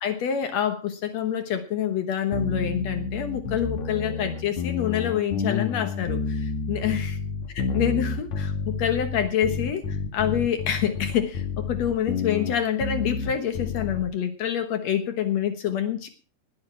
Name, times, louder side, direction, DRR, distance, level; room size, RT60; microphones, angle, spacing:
voice 1, 0.0-7.2 7.5-16.1, left 9 dB, 75° left, 8 dB, 1.5 m, -27 dB
sound 1, 2.3-14.1, left 5 dB, 60° left, 2.1 m, -30 dB
19.5 x 7.2 x 6.0 m, 0.35 s
omnidirectional pair, 4.9 m